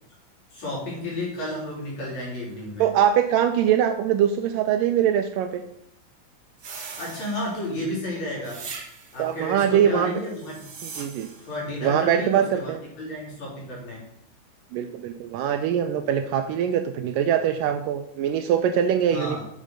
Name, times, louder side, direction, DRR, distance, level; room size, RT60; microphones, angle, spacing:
voice 1, 0.5-2.9 7.0-8.6 9.1-10.6 11.4-14.0 19.1-19.4, left 1 dB, 50° left, -4 dB, 4.7 m, -32 dB
voice 2, 2.8-5.6 9.2-10.1 10.8-11.3 11.8-12.8 14.7-19.4, right 9 dB, 80° right, 7 dB, 2.1 m, -22 dB
sound 1, 6.6-7.8 8.4-9.3 10.3-11.5, right 5 dB, 50° right, 1.1 m, -40 dB
7.4 x 6.8 x 6.3 m, 0.75 s
omnidirectional pair, 4.2 m